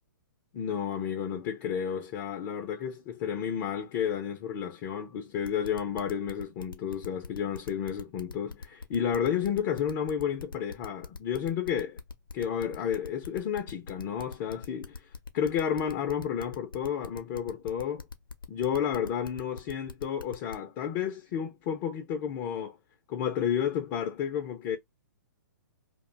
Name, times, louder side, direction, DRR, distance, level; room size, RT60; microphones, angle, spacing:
voice 1, 0.5-12.0 12.3-15.1 15.3-18.1 18.5-22.8 23.1-24.8, left 8 dB, 35° left, 0.5 m, -31 dB
sound 1, 5.4-20.6, left 4 dB, 85° left, 0.6 m, -42 dB
2.4 x 2.2 x 3.1 m
hypercardioid pair, 125°, 11 cm